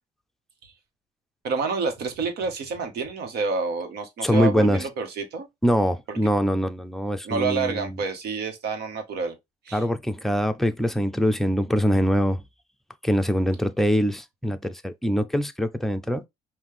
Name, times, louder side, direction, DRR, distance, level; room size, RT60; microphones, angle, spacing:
voice 1, 1.4-5.5 6.1-6.2 7.2-9.4 9.6-9.8, right 4 dB, 75° right, 1.5 m, -28 dB
voice 2, 4.2-4.9 5.6-8.0 9.7-12.4 13.0-16.2, equal, ahead, 0.6 m, -23 dB
5.6 x 2.7 x 3.4 m
cardioid pair, 110°, 17 cm